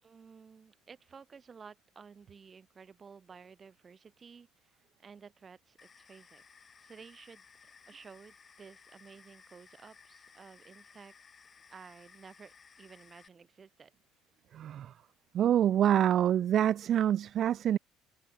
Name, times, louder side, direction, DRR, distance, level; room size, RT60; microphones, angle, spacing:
voice 1, 0.0-11.2 11.7-14.0, right 6 dB, 25° right, 3.2 m, -54 dB
sound 1, 5.8-13.3, left 6 dB, 25° left, 6.1 m, -59 dB
voice 2, 14.5-14.9 15.3-17.8, right 10 dB, 45° right, 0.3 m, -26 dB
cardioid pair, 130°, 0 cm